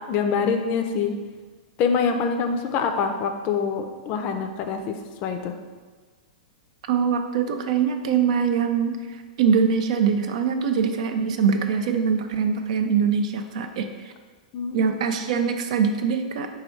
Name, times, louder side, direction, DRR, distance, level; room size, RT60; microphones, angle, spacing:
voice 1, 0.1-1.1 1.8-4.9 5.2-5.5 14.5-14.9, left 6 dB, 40° left, 6 dB, 0.4 m, -25 dB
voice 2, 6.9-14.1 14.7-16.5, right 6 dB, 60° right, 7 dB, 0.4 m, -23 dB
4.1 x 2.3 x 4.4 m, 1.4 s
hypercardioid pair, 110°, 4 cm